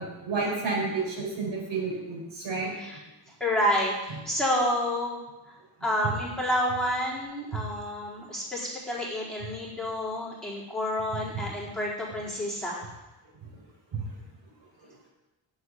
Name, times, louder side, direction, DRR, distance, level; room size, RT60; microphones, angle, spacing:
voice 1, 0.0-2.7 7.7-7.8 13.9-14.0, right 4 dB, 65° right, -3 dB, 5.0 m, -30 dB
voice 2, 3.4-5.2 5.8-12.9, equal, ahead, -7 dB, 4.4 m, -29 dB
8.4 x 8.1 x 7.6 m, 1.0 s
cardioid pair, 85°, 47 cm